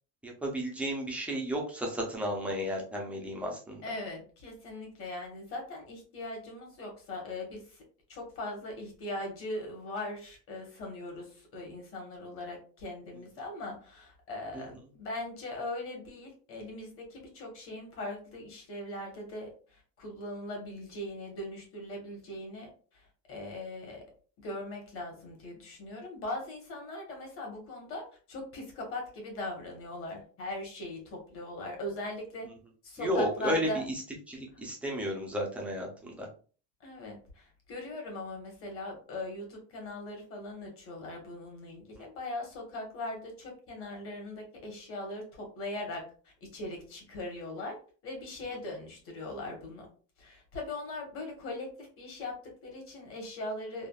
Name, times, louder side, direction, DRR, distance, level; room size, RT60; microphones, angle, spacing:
voice 1, 0.2-3.8 33.0-33.7 34.3-36.3, equal, 5° right, -1 dB, 0.3 m, -33 dB
voice 2, 3.8-7.8 8.1-24.1 24.4-32.5 32.8-33.8 36.8-47.8 48.0-49.9 50.2-53.9, left 2 dB, 35° left, 1 dB, 1.1 m, -40 dB
3.4 x 2.2 x 2.2 m, 0.39 s
cardioid pair, 165°, 36 cm